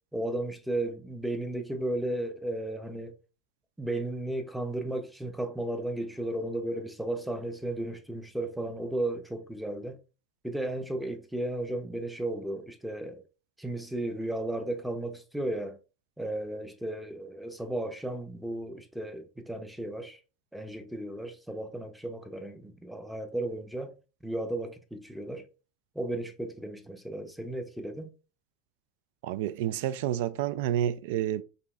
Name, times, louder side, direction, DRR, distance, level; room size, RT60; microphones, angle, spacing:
voice 1, 0.1-3.2 3.8-10.0 10.4-13.2 13.6-15.8 16.2-20.2 20.5-23.9 24.2-25.5 25.9-28.1, right 1 dB, ahead, 0.6 m, -34 dB
voice 2, 29.2-31.4, right 11 dB, 75° right, 0.3 m, -29 dB
4.9 x 2.7 x 2.3 m
supercardioid pair, 125°, 0 cm